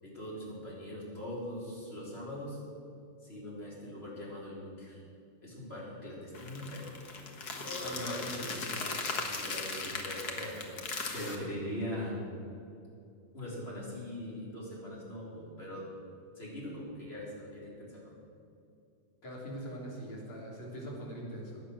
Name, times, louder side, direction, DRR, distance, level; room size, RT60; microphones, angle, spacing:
voice 1, 0.0-2.6 3.2-5.0 5.4-6.9 7.6-8.3 9.3-10.7 11.1-12.2 13.3-15.8 16.4-18.2, left 1 dB, 30° left, -5 dB, 4.2 m, -41 dB
sound 1, 6.3-11.3, left 3 dB, 50° left, 1.9 m, -38 dB
voice 2, 7.8-9.0 19.2-21.6, equal, 75° left, -4 dB, 4.3 m, -42 dB
16.0 x 9.9 x 6.4 m, 2.6 s
omnidirectional pair, 2.3 m